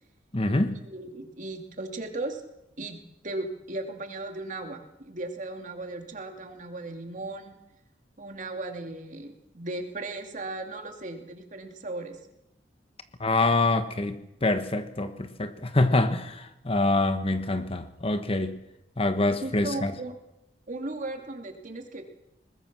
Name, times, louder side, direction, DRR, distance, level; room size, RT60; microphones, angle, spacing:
voice 1, 0.3-0.8 13.2-14.2 14.4-18.5 19.0-19.9, left 2 dB, 35° left, 9 dB, 1.2 m, -25 dB
voice 2, 0.9-2.4 2.8-3.0 3.2-7.6 8.2-12.2 19.4-20.2 20.7-22.0, right 2 dB, 45° right, 4 dB, 2.8 m, -36 dB
21.5 x 20.5 x 6.2 m, 0.90 s
head